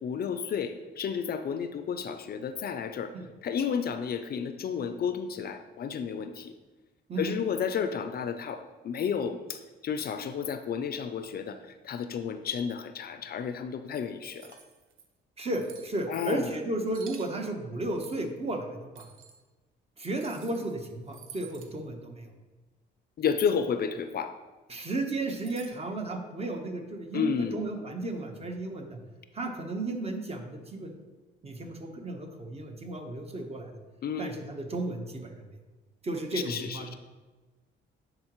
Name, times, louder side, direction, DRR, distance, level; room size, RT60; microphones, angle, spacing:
voice 1, 0.0-3.1 3.4-6.5 7.2-14.6 16.1-16.5 23.2-24.3 27.1-27.6 34.0-34.4 36.3-37.0, left 7 dB, 50° left, 9 dB, 0.5 m, -32 dB
voice 2, 7.1-7.4 15.4-19.1 20.0-22.3 24.7-29.0 29.3-30.9 31.4-33.8 34.2-35.5 36.0-37.0, right 2 dB, 30° right, 4 dB, 1.0 m, -34 dB
sound 1, 14.3-15.0 15.6-15.9 16.9-17.3 18.0-18.3 18.9-19.4 20.1-20.7 21.1-21.7 25.4-25.7, right 8 dB, 80° right, 0.7 m, -50 dB
10.0 x 3.9 x 3.0 m, 1.2 s
cardioid pair, 90°, 20 cm